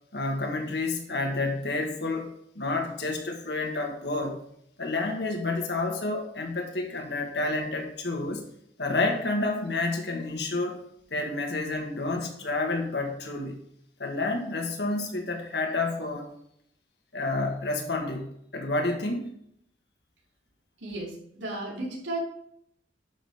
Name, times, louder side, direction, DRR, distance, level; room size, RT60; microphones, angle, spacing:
voice 1, 0.1-4.4 4.8-8.4 8.8-10.8 11.1-13.6 14.0-16.3 17.1-19.3, left 2 dB, 60° left, 2 dB, 1.7 m, -29 dB
voice 2, 20.8-22.2, right 2 dB, 85° right, -2 dB, 3.2 m, -34 dB
11.0 x 6.2 x 3.6 m, 0.70 s
head